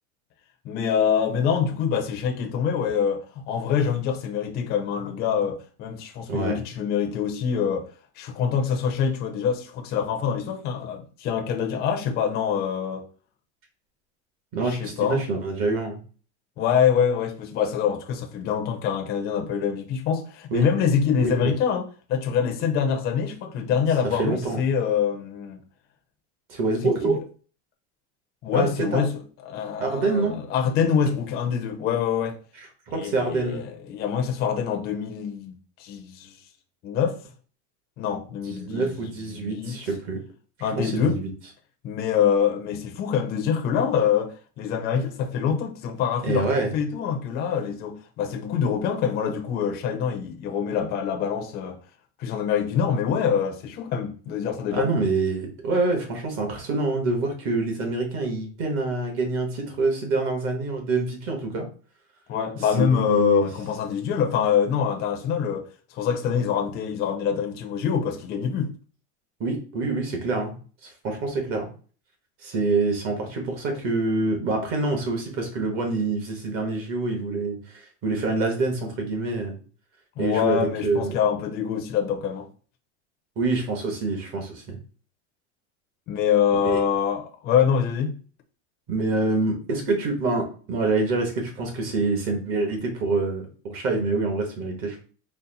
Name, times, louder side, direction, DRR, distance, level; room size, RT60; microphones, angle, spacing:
voice 1, 0.6-7.9 8.2-13.0 14.6-15.3 16.6-25.6 26.8-27.2 28.4-32.4 32.9-36.3 36.8-37.2 38.0-39.8 40.6-41.2 41.8-51.8 52.2-54.9 62.3-68.7 80.2-82.5 86.1-88.2, left 7 dB, 25° left, 0.6 m, -25 dB
voice 2, 14.5-16.0 20.5-20.7 21.2-21.5 24.2-24.6 26.5-27.2 28.5-29.0 29.8-30.4 32.6-33.7 38.5-40.2 40.6-41.3 46.2-46.7 54.7-61.6 62.8-63.5 69.4-70.6 70.8-71.7 72.4-79.6 80.2-81.2 83.4-84.8 86.6-86.8 88.9-95.0, right 3 dB, 40° right, 1.2 m, -26 dB
4.2 x 2.1 x 3.9 m
supercardioid pair, 155°, 36 cm